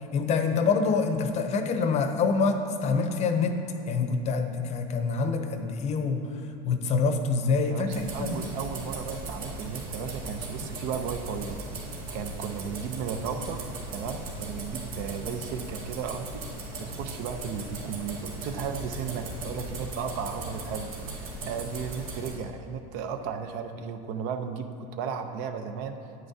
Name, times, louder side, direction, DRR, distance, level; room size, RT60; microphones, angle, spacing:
voice 1, 0.1-6.3 6.6-8.4, left 4 dB, 40° left, 7 dB, 0.7 m, -26 dB
voice 2, 7.6-11.6 12.1-13.6 13.9-16.4 16.8-26.0, right 6 dB, 60° right, 7 dB, 0.7 m, -35 dB
sound 1, 7.9-22.3, right 2 dB, 80° right, 1.9 m, -38 dB
9.2 x 9.2 x 2.8 m, 2.6 s
supercardioid pair, 120°, 18 cm